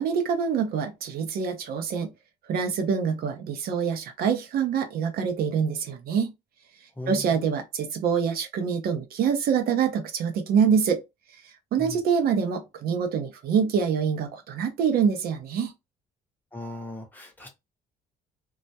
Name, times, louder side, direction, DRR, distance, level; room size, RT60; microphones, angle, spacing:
voice 1, 0.0-2.1 2.5-6.3 7.1-11.0 11.7-15.7, right 6 dB, 65° right, 0.6 m, -25 dB
voice 2, 7.0-7.4 11.8-12.0 16.5-17.5, left 2 dB, 10° left, 0.8 m, -37 dB
2.2 x 2.0 x 2.7 m
cardioid pair, 110°, 17 cm